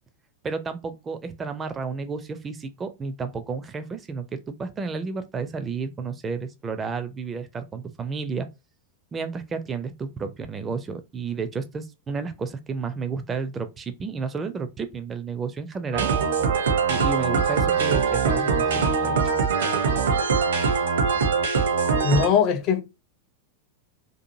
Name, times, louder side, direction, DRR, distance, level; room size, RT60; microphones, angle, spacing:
voice 1, 0.4-8.5 9.1-16.1 16.9-19.2, right 5 dB, 20° right, 0.4 m, -32 dB
sound 1, 15.9-22.3, right 5 dB, 60° right, 0.6 m, -22 dB
voice 2, 22.0-22.8, left 7 dB, 35° left, 0.5 m, -20 dB
2.7 x 2.4 x 2.6 m
figure-of-eight pair, 90°, 0 cm